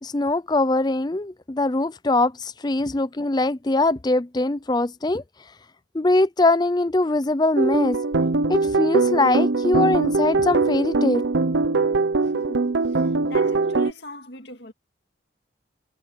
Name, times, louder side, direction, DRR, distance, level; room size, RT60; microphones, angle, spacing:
voice 1, 0.0-5.2 5.9-8.0 8.5-11.2, left 2 dB, 20° left, 0.5 m, -22 dB
sound 1, 7.6-13.9, right 3 dB, 70° right, 0.8 m, -22 dB
voice 2, 12.2-14.7, left 2 dB, 60° left, 2.0 m, -42 dB
head